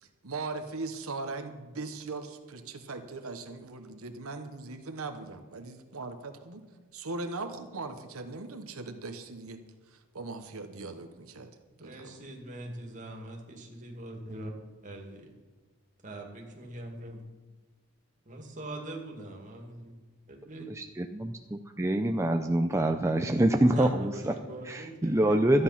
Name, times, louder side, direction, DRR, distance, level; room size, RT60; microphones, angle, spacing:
voice 1, 0.0-6.6 6.9-12.2, right 3 dB, 85° right, 7 dB, 1.1 m, -40 dB
voice 2, 11.8-14.5 14.8-15.3 16.0-17.2 18.3-19.9 20.3-20.7 23.7-25.6, right 2 dB, 35° right, 1 dB, 2.2 m, -42 dB
voice 3, 20.8-24.3 24.7-25.6, right 1 dB, 15° right, 5 dB, 0.5 m, -26 dB
13.5 x 9.5 x 5.8 m, 1.4 s
head